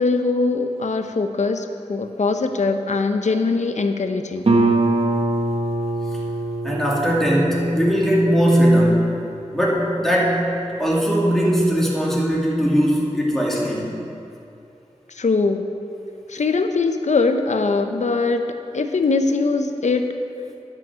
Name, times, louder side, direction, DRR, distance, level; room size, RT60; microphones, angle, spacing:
voice 1, 0.0-4.5 15.1-15.7 16.3-18.4 18.7-20.0, left 3 dB, 75° left, 7 dB, 0.7 m, -21 dB
Guitar, 4.4-9.9, right 2 dB, 55° right, 1.1 m, -24 dB
voice 2, 6.6-9.1 9.5-10.5 10.8-13.9, equal, 5° left, -5 dB, 2.5 m, -19 dB
11.0 x 6.0 x 8.0 m, 2.7 s
wide cardioid pair, 65°, 12 cm